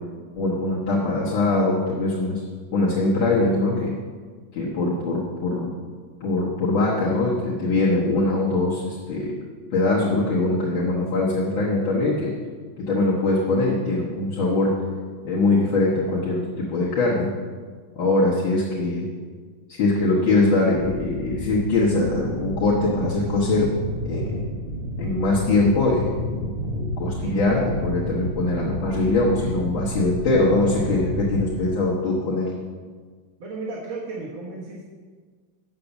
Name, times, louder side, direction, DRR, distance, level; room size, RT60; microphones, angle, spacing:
voice 1, 0.4-2.4 2.7-3.9 4.5-5.7 6.2-9.4 9.7-12.3 12.8-14.7 15.2-17.3 18.0-19.1 19.7-23.7 24.1-24.4 25.0-32.5, left 2 dB, 75° left, -6 dB, 2.1 m, -22 dB
sound 1, 20.7-31.6, equal, 45° right, 0.8 m, -31 dB
voice 2, 33.4-34.9, right 3 dB, 90° right, -4 dB, 2.2 m, -34 dB
7.7 x 6.7 x 7.1 m, 1.5 s
omnidirectional pair, 2.2 m